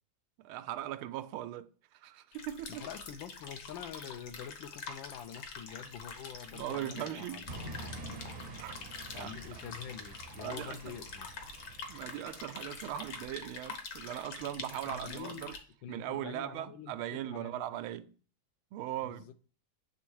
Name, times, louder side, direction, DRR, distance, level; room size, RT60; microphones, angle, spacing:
voice 1, 0.4-2.8 6.5-7.5 8.6-8.8 9.1-9.4 10.3-11.0 11.9-15.6 15.9-18.1 18.7-19.2, right 12 dB, 90° right, 1.4 m, -39 dB
sound 1, 2.3-15.6, left 5 dB, 60° left, 1.6 m, -46 dB
voice 2, 2.7-7.5 8.0-8.3 9.1-11.3 14.6-15.5 15.8-17.6 17.9-18.0 19.0-19.3, left 9 dB, 80° left, 1.3 m, -46 dB
sound 2, 7.5-13.6, right 2 dB, 55° right, 0.6 m, -48 dB
8.3 x 3.4 x 4.7 m
omnidirectional pair, 2.2 m